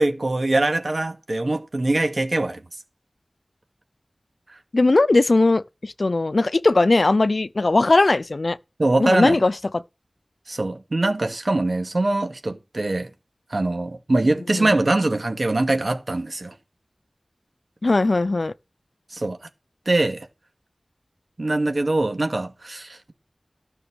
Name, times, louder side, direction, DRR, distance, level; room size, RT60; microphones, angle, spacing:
voice 1, 0.0-2.6 8.8-9.4 10.5-13.1 13.5-16.5 19.1-19.4 19.9-20.3 21.4-23.1, right 2 dB, 60° right, 2.3 m, -23 dB
voice 2, 4.7-8.6 9.0-9.8 14.6-14.7 17.8-18.5, left 2 dB, 65° left, 0.6 m, -19 dB
13.0 x 6.3 x 6.4 m
wide cardioid pair, 60°, 0 cm